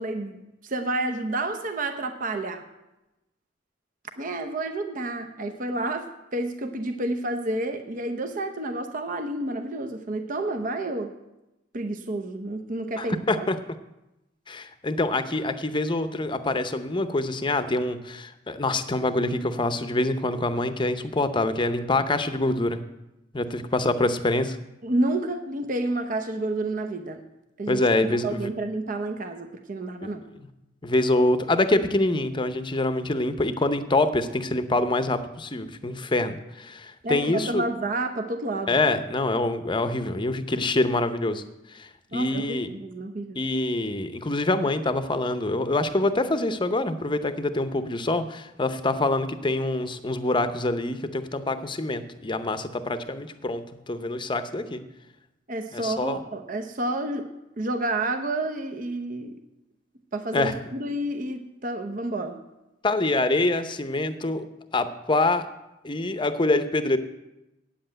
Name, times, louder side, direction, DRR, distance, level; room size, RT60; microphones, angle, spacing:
voice 1, 0.0-2.7 4.2-11.1 11.7-13.5 24.8-27.2 27.6-27.8 28.1-30.3 37.0-38.8 42.1-43.4 55.5-57.3 57.6-59.3 60.1-62.4, right 2 dB, 45° right, 7 dB, 0.8 m, -30 dB
voice 2, 13.0-13.6 14.5-22.8 23.3-24.6 27.7-28.5 30.8-37.6 38.7-41.4 41.7-42.7 43.4-54.8 55.7-56.2 60.3-60.5 62.8-64.5 64.7-65.5 65.8-67.0, left 2 dB, 25° left, 11 dB, 0.7 m, -25 dB
8.5 x 7.8 x 8.9 m, 0.95 s
head